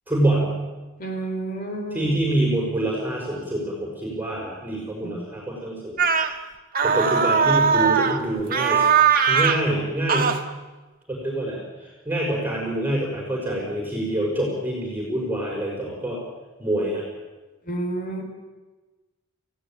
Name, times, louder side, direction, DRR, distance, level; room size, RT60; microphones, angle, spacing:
voice 1, 0.1-0.5 1.9-6.0 6.8-8.9 9.3-10.3 11.1-16.2 16.6-17.0, right 1 dB, 10° right, -2 dB, 5.7 m, -26 dB
voice 2, 1.0-2.2 5.0-5.3 17.7-18.2, right 2 dB, 40° left, 4 dB, 4.5 m, -30 dB
sound 1, 6.0-6.3 6.7-8.2 8.5-9.6 10.1-10.4, right 6 dB, 40° right, 1.6 m, -19 dB
29.0 x 17.0 x 8.9 m, 1.2 s
head